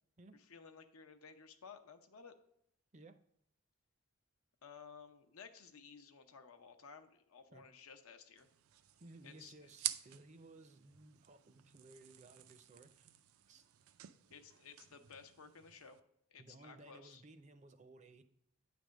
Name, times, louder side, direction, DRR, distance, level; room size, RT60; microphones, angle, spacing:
voice 1, 0.5-2.3 4.6-8.5 9.2-9.5 14.3-16.0 16.3-17.2, left 6 dB, 85° left, 7 dB, 0.8 m, -56 dB
sound 1, 8.4-16.0, right 13 dB, 85° right, 0.4 m, -49 dB
voice 2, 9.0-13.1 13.5-13.7 16.4-18.2, right 2 dB, 30° right, 9 dB, 0.5 m, -58 dB
9.4 x 3.4 x 6.3 m, 0.74 s
head